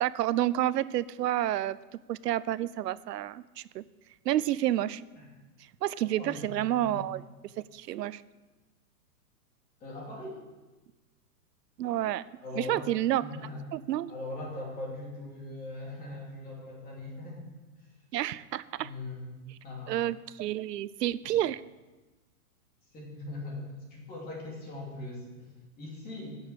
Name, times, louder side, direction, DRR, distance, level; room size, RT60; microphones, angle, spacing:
voice 1, 0.0-1.8 2.1-3.8 4.2-5.0 5.8-7.2 7.7-8.2 11.8-12.2 12.6-13.2 13.7-14.1 18.1-18.9 19.9-21.6, right 13 dB, 90° right, 18 dB, 0.7 m, -29 dB
voice 2, 6.0-7.0 9.8-10.4 12.4-12.9 13.2-13.6 14.1-17.4 17.8-17.9 18.8-19.4 19.6-20.0 22.9-26.4, left 2 dB, 20° left, -2 dB, 2.8 m, -41 dB
9.8 x 7.1 x 8.2 m, 1.2 s
hypercardioid pair, 160°, 47 cm